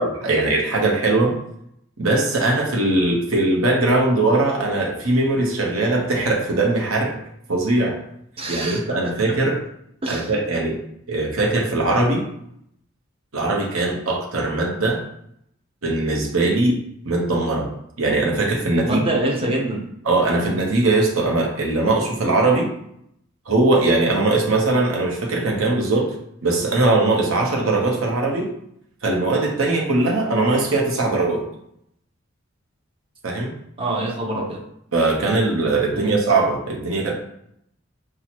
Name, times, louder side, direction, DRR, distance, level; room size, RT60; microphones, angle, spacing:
voice 1, 0.0-1.4 2.0-7.2 7.5-8.0 8.5-9.6 10.1-10.8 11.1-12.2 13.3-15.0 15.8-16.8 17.0-17.7 18.0-19.0 20.0-22.7 23.5-26.2 26.4-28.5 29.0-31.4 33.2-33.5 34.9-37.1, right 2 dB, 80° right, 0 dB, 1.0 m, -20 dB
voice 2, 8.4-9.2 10.0-10.3 18.8-19.9 25.3-25.4 33.8-34.6 35.9-36.2, right 1 dB, 25° right, -1 dB, 0.8 m, -26 dB
5.8 x 2.3 x 3.0 m, 0.73 s
head